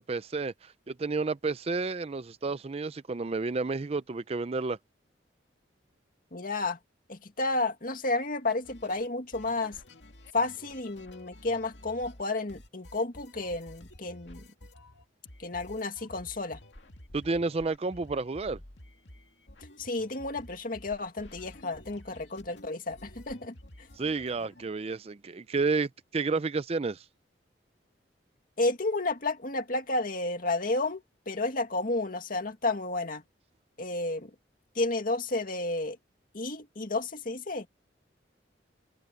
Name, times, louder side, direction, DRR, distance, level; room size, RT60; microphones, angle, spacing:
voice 1, 0.0-4.8 17.1-18.6 24.0-27.0, right 3 dB, 35° right, 0.5 m, -31 dB
voice 2, 6.3-6.8 7.1-9.8 10.3-14.5 15.4-16.6 19.8-23.9 28.6-33.2 33.8-34.3 34.8-36.0 36.3-37.7, left 2 dB, 50° left, 2.1 m, -31 dB
sound 1, 8.6-12.2 12.5-24.6, left 1 dB, 75° left, 2.5 m, -51 dB
head